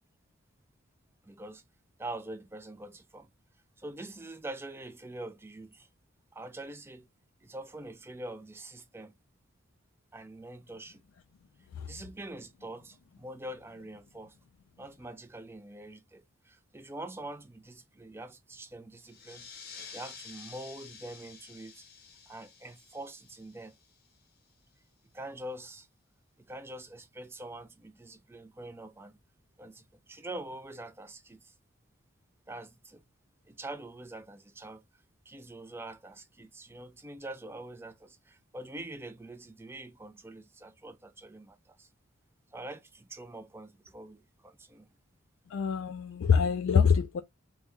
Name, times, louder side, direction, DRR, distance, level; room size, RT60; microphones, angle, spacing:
voice 1, 1.2-1.6 2.0-3.3 3.8-5.9 6.3-7.1 7.4-9.1 10.1-11.0 11.9-14.4 14.8-19.5 19.9-21.9 22.3-23.7 25.1-25.9 26.4-29.1 29.6-31.5 32.5-33.0 33.5-34.8 35.3-41.9 42.5-44.9, right 1 dB, 10° right, 0.3 m, -44 dB
sound 1, 19.0-24.2, left 5 dB, 45° left, 0.7 m, -50 dB
voice 2, 45.5-47.2, left 6 dB, 70° left, 0.3 m, -25 dB
3.4 x 2.1 x 3.0 m
head